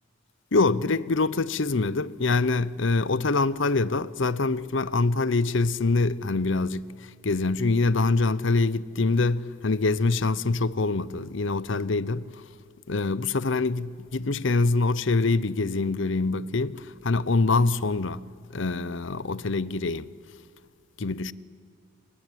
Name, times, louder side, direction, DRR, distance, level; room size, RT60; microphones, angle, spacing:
voice 1, 0.5-12.3 12.9-20.1 21.0-21.3, left 3 dB, 65° left, 0.8 m, -25 dB
27.5 x 22.5 x 9.3 m
head